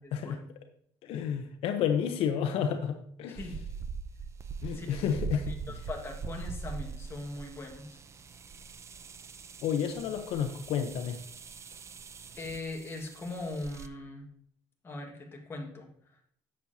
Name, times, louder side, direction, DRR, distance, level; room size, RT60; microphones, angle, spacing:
voice 1, 0.0-0.5 3.4-3.5 4.7-5.1 5.5-8.0 12.4-14.3 14.8-15.9, left 2 dB, 25° left, 1 dB, 1.7 m, -40 dB
voice 2, 1.0-3.4 4.6-5.8 9.6-11.2, left 8 dB, 80° left, 6 dB, 0.8 m, -31 dB
sound 1, 3.4-13.9, right 5 dB, 30° right, 0.5 m, -42 dB
10.5 x 7.5 x 2.8 m, 0.65 s
cardioid pair, 130°, 10 cm